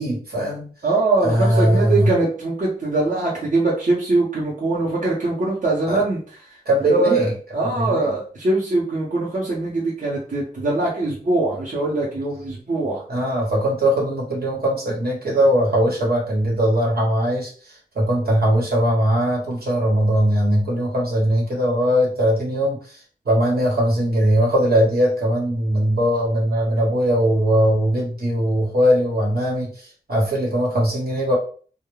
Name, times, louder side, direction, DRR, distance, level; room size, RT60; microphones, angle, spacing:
voice 1, 0.0-0.7 1.2-2.1 5.9-6.0 6.6-7.3 7.6-8.1 13.1-23.0 23.2-31.4, equal, 70° right, -3 dB, 1.1 m, -20 dB
voice 2, 0.8-6.2 6.9-13.0, right 2 dB, 50° right, -5 dB, 0.8 m, -22 dB
2.3 x 2.1 x 3.1 m, 0.42 s
wide cardioid pair, 70°, 17 cm